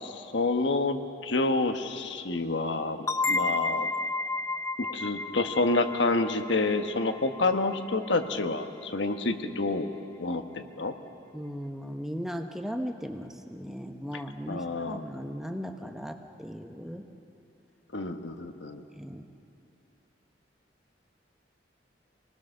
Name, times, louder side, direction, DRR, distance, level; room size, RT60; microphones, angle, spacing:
voice 1, 0.0-3.9 4.8-9.9 10.2-10.9 14.5-15.0 17.9-18.8, left 2 dB, 75° left, 7 dB, 1.2 m, -28 dB
sound 1, 3.1-8.5, left 3 dB, 15° left, 0.5 m, -32 dB
voice 2, 11.3-17.0 19.0-19.3, equal, ahead, 5 dB, 0.9 m, -37 dB
26.5 x 20.0 x 6.5 m, 2.7 s
head